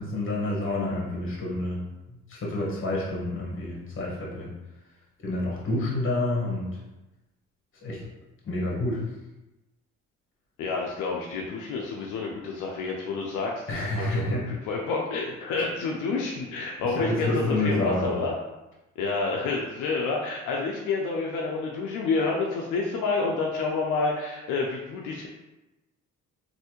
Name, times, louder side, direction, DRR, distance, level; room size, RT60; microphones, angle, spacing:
voice 1, 0.0-4.5 5.2-6.8 7.8-8.0 8.4-9.1 13.7-14.5 15.6-15.7 16.8-18.1, left 1 dB, 45° left, -4 dB, 1.4 m, -29 dB
voice 2, 10.6-13.7 13.9-18.3 19.0-25.3, left 4 dB, 85° left, -1 dB, 0.5 m, -29 dB
3.2 x 2.6 x 3.0 m, 1.0 s
cardioid pair, 90°, 30 cm